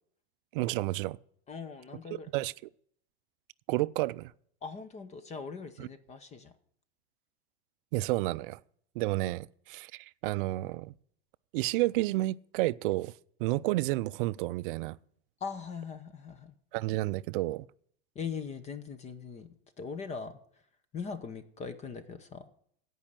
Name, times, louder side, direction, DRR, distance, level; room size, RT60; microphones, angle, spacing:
voice 1, 0.5-1.2 2.3-2.5 3.7-4.3 5.8-5.9 7.9-8.6 9.0-10.9 11.5-13.1 13.4-15.0 16.7-17.7, right 18 dB, 55° right, 0.5 m, -30 dB
voice 2, 1.5-2.3 4.6-6.5 15.4-16.5 18.1-19.5 19.8-20.4 20.9-22.4, left 5 dB, 20° left, 0.8 m, -40 dB
16.5 x 5.5 x 7.5 m
supercardioid pair, 130°, 31 cm